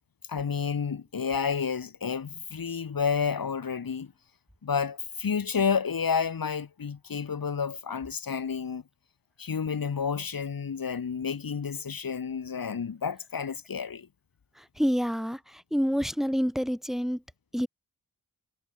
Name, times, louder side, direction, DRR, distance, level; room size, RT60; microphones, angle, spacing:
voice 1, 0.3-4.1 4.6-8.8 9.4-14.1, left 6 dB, 65° left, 5.6 m, -30 dB
voice 2, 14.8-17.2 17.5-17.7, equal, ahead, 6.2 m, -27 dB
supercardioid pair, 40°, 38 cm